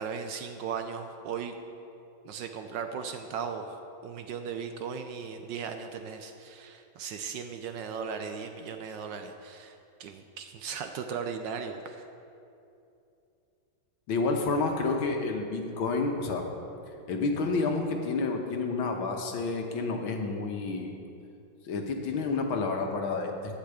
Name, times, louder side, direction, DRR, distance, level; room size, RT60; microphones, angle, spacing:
voice 1, 0.0-1.6 2.2-3.7 4.0-9.7 10.0-12.1, right 6 dB, 70° right, 6 dB, 1.2 m, -37 dB
voice 2, 14.1-16.4 17.1-20.9 21.6-23.6, left 3 dB, 75° left, 3 dB, 1.9 m, -29 dB
12.0 x 5.9 x 8.0 m, 2.7 s
omnidirectional pair, 2.3 m